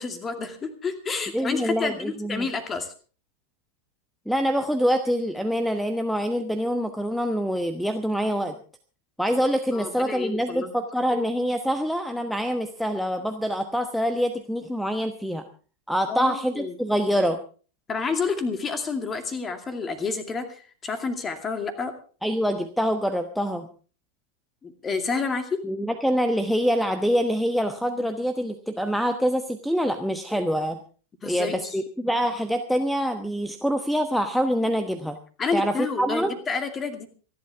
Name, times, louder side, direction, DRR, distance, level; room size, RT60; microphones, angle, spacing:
voice 1, 0.0-2.9 9.7-10.7 16.1-16.8 17.9-21.9 24.6-25.6 31.2-31.7 35.4-37.1, left 4 dB, 20° left, 8 dB, 2.4 m, -29 dB
voice 2, 1.3-2.5 4.3-8.6 9.2-15.4 15.9-17.4 22.2-23.7 25.6-30.8 31.2-35.2 35.5-36.3, equal, ahead, 9 dB, 1.1 m, -25 dB
26.5 x 11.5 x 3.5 m, 0.39 s
figure-of-eight pair, 90°, 0 cm